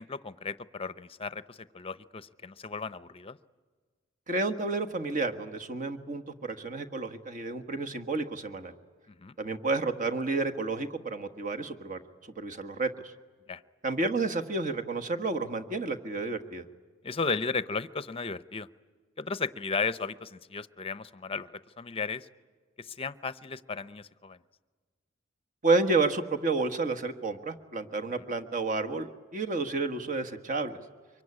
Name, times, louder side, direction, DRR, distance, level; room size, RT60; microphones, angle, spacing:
voice 1, 0.0-3.4 9.1-9.3 13.5-13.6 17.0-18.7 19.2-21.5 21.8-22.3 22.8-24.4, left 4 dB, 30° left, 14 dB, 0.7 m, -35 dB
voice 2, 4.3-8.7 9.4-12.0 12.4-13.1 13.8-16.6 25.6-30.8, right 3 dB, 45° right, 6 dB, 1.5 m, -30 dB
24.5 x 23.5 x 9.8 m, 1.5 s
head